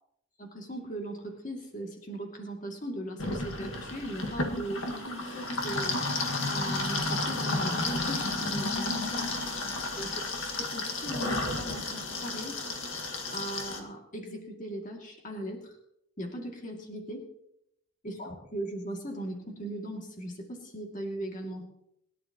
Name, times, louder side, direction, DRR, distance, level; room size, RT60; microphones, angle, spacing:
voice 1, 0.4-6.0 6.5-9.3 10.0-10.1 10.6-12.6 13.3-15.8 16.2-17.3 18.0-21.6, right 1 dB, 35° left, 1 dB, 2.4 m, -39 dB
sound 1, 3.2-13.8, left 2 dB, 65° left, 1.9 m, -32 dB
21.5 x 11.0 x 3.0 m, 0.76 s
head